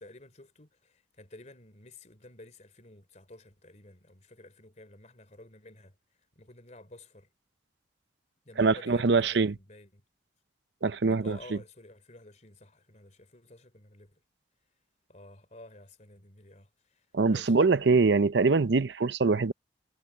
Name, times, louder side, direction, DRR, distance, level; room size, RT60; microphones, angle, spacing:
voice 1, 0.0-6.0 6.3-7.3 8.4-10.0 11.1-14.2 15.1-17.6, left 2 dB, 40° left, 3.5 m, -52 dB
voice 2, 8.6-9.5 10.8-11.4 17.1-19.5, right 4 dB, 75° right, 0.7 m, -23 dB
head